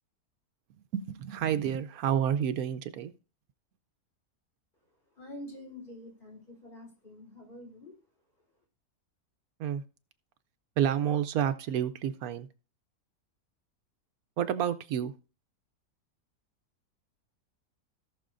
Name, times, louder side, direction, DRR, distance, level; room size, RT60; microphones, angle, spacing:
voice 1, 0.9-3.1 9.6-9.8 10.8-12.5 14.4-15.1, right 9 dB, 80° right, 11 dB, 1.1 m, -29 dB
voice 2, 5.1-7.9, left 1 dB, 35° left, 1 dB, 4.0 m, -46 dB
17.5 x 6.2 x 2.5 m, 0.35 s
omnidirectional pair, 1.6 m